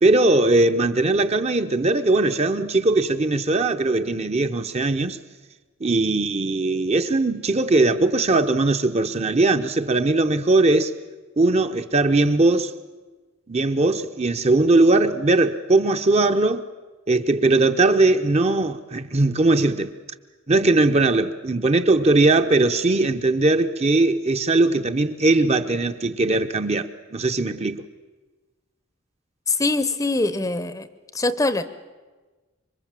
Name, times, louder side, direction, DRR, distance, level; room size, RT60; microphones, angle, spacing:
voice 1, 0.0-5.2 5.8-10.9 11.4-12.7 13.5-16.6 17.1-19.9 20.5-27.9, right 2 dB, 30° right, 0.8 m, -20 dB
voice 2, 29.5-30.9 31.1-31.7, left 2 dB, 15° left, 0.7 m, -23 dB
26.5 x 23.5 x 7.5 m
head